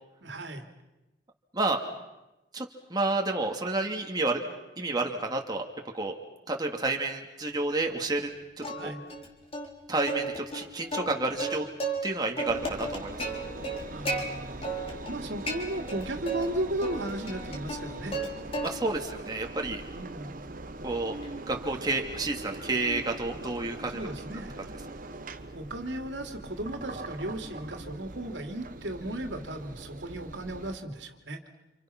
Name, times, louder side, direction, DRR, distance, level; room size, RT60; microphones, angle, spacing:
voice 1, 0.2-0.6 8.7-9.0 13.9-14.6 14.9-18.2 19.9-20.4 23.9-24.5 25.5-31.4, right 1 dB, 80° right, 4 dB, 3.0 m, -35 dB
voice 2, 2.5-4.4 4.8-5.6 5.9-6.2 6.5-8.3 8.6-8.9 9.9-11.7 12.0-13.2 18.6-19.8 20.8-21.1 21.5-24.1, right 2 dB, 20° right, 1 dB, 2.3 m, -30 dB
Plucked string instrument, 8.6-9.3 9.5-9.7 10.1-12.1 12.4-14.2 14.6-15.2 15.5-16.4 16.8-18.3 18.5-19.0 19.4-23.7, right 2 dB, 30° left, 3.8 m, -35 dB
Engine, 12.5-30.8, right 2 dB, 50° right, 1.4 m, -42 dB
29.5 x 28.0 x 6.0 m, 0.99 s
head